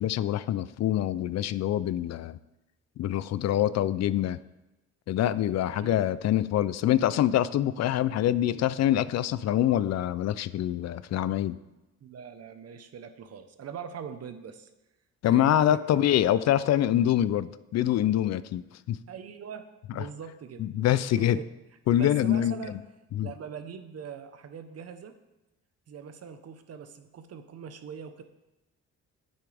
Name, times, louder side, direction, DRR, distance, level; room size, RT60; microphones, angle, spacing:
voice 1, 0.0-2.4 3.0-4.4 5.1-11.6 15.2-18.6 18.9-19.0 20.0-20.1 20.6-21.4 21.9-22.5 23.2-23.3, left 11 dB, 60° left, 16 dB, 0.4 m, -25 dB
voice 2, 5.8-6.1 12.0-14.7 15.3-15.8 19.1-19.7 19.9-21.4 22.0-22.8 23.2-25.2 25.9-28.2, right 7 dB, 55° right, 9 dB, 1.0 m, -42 dB
9.5 x 8.5 x 3.4 m, 0.99 s
cardioid pair, 90°, 30 cm